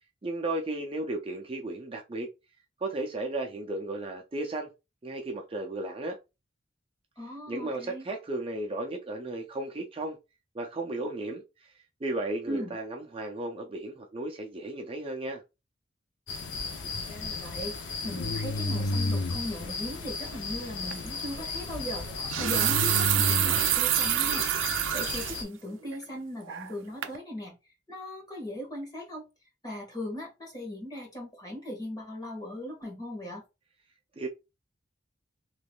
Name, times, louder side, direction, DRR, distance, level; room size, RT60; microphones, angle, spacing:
voice 1, 0.2-2.3 2.8-4.7 5.0-6.2 7.5-10.2 10.5-11.4 12.0-15.4 34.2-34.3, right 2 dB, 30° right, 0.5 m, -34 dB
voice 2, 7.2-8.1 12.5-12.7 17.1-27.5 27.9-29.2 29.6-33.4, left 1 dB, 20° left, 1.6 m, -38 dB
sound 1, 16.3-25.4, left 3 dB, 70° left, 0.7 m, -33 dB
sound 2, 20.9-21.1 22.1-25.4 25.9-26.0 26.5-26.8 27.0-27.2, right 12 dB, 90° right, 0.4 m, -27 dB
3.4 x 3.0 x 2.3 m
head